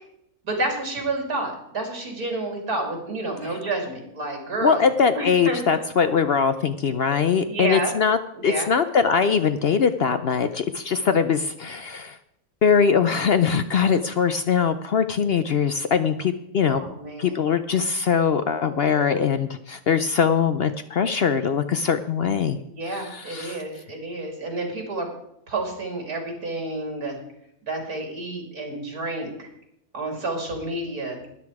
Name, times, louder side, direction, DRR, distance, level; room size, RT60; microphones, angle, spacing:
voice 1, 0.4-4.9 5.2-5.6 7.4-8.0 8.3-8.7 16.7-17.4 22.6-25.1 25.5-27.2 27.6-29.5 29.9-31.2, right 2 dB, 85° right, 2 dB, 3.5 m, -30 dB
voice 2, 4.6-12.2 12.6-16.8 17.2-22.6 22.9-23.6, left 6 dB, 60° left, 10 dB, 0.6 m, -22 dB
13.0 x 10.5 x 4.8 m, 0.78 s
omnidirectional pair, 1.6 m